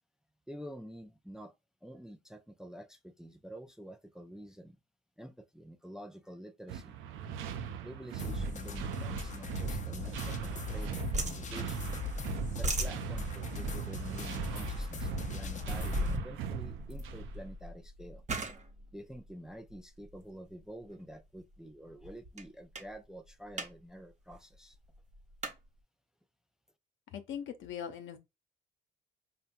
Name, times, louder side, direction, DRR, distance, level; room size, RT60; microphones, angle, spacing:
voice 1, 0.5-1.5 1.8-4.8 5.2-7.0 7.8-11.9 12.5-18.2 18.9-24.8, equal, 5° right, 0.4 m, -48 dB
sound 1, 6.7-17.4, right 8 dB, 85° right, 0.5 m, -40 dB
sound 2, 8.2-16.2, left 4 dB, 40° left, 0.6 m, -40 dB
sound 3, 9.9-10.8 11.1-12.1 12.4-20.2 20.8-21.1 21.5-21.6 21.9-22.4 22.7-22.9 23.3-23.7 24.0-24.1 24.3-25.6, right 1 dB, 35° right, 0.9 m, -38 dB
voice 2, 27.1-28.2, left 8 dB, 75° left, 0.8 m, -40 dB
5.6 x 2.2 x 2.6 m
cardioid pair, 90°, 20 cm